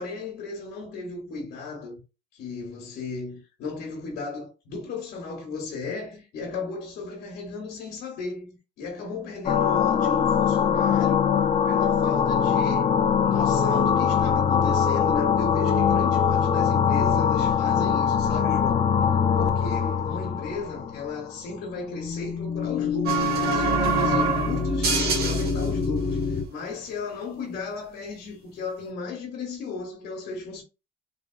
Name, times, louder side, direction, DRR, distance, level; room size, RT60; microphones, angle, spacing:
voice 1, 0.0-2.0 2.3-11.3 11.7-18.9 19.3-30.6, left 4 dB, 75° left, 1.4 m, -35 dB
sound 1, 9.5-21.4 21.8-26.5, left 7 dB, 40° left, 0.6 m, -23 dB
sound 2, 23.0-26.0, right 4 dB, 65° right, 1.4 m, -25 dB
3.5 x 3.4 x 2.5 m
cardioid pair, 110°, 17 cm